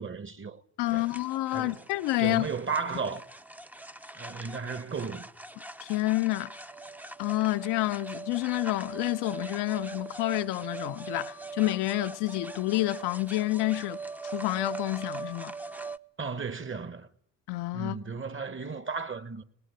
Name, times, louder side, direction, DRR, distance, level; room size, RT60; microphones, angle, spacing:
voice 1, 0.0-0.6 0.9-1.1 1.5-1.8 2.2-3.3 4.1-5.3 16.2-17.1 17.7-19.4, right 5 dB, 30° right, 1.6 m, -34 dB
voice 2, 0.8-2.5 5.8-6.5 7.2-14.0 14.3-15.5 17.5-18.0, left 19 dB, 70° left, 0.8 m, -29 dB
sound 1, 0.9-16.0, right 3 dB, 5° right, 0.8 m, -41 dB
20.0 x 18.5 x 9.4 m
hypercardioid pair, 45°, 42 cm